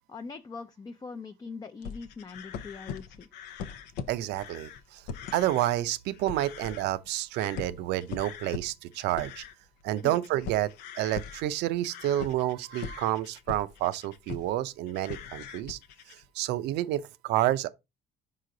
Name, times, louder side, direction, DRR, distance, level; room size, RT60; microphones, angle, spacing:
voice 1, 0.1-3.3 10.0-10.2, left 4 dB, 25° left, 0.5 m, -42 dB
sound 1, 1.8-5.8 6.1-7.1 7.4-14.6 14.9-16.3, left 6 dB, 90° left, 0.7 m, -41 dB
voice 2, 4.1-5.0 5.3-9.4 9.8-10.7 11.0-15.8 16.1-17.7, right 14 dB, 85° right, 0.6 m, -29 dB
5.6 x 4.9 x 3.8 m
cardioid pair, 110°, 17 cm